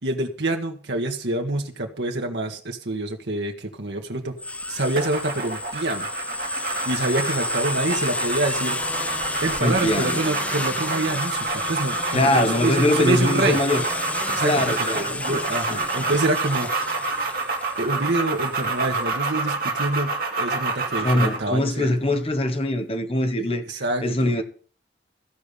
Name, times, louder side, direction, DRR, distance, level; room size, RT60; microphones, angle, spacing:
voice 1, 0.0-4.3 4.7-6.1 6.6-9.1 9.4-13.6 14.3-16.7 17.8-22.0 23.4-24.3, right 2 dB, 75° right, 1.5 m, -27 dB
sound 1, 4.4-19.0, left 2 dB, 10° left, 0.5 m, -31 dB
sound 2, 5.0-21.5, right 3 dB, 55° right, 2.2 m, -28 dB
voice 2, 9.6-10.2 12.1-13.8 14.4-15.4 15.7-15.9 21.0-24.4, left 1 dB, 30° left, 1.3 m, -23 dB
14.5 x 5.2 x 8.3 m
head